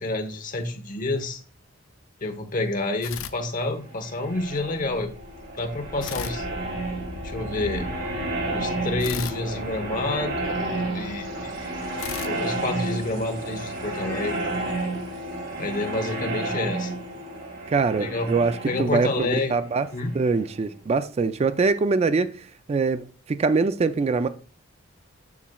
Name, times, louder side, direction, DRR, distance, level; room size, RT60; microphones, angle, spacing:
voice 1, 0.0-1.4 2.2-5.1 5.5-6.4 7.2-7.9 8.5-11.8 12.2-14.4 15.6-16.9 18.0-18.3 18.7-19.5 19.9-20.1, left 2 dB, 45° left, 0.9 m, -29 dB
sound 1, 3.0-4.2 6.0-7.4 9.0-10.7 12.0-13.5, left 8 dB, 75° left, 0.4 m, -39 dB
sound 2, 3.9-20.5, right 2 dB, 65° right, 3.0 m, -31 dB
voice 2, 17.7-19.9 20.1-24.3, right 4 dB, 30° right, 0.3 m, -23 dB
7.1 x 6.1 x 2.3 m
head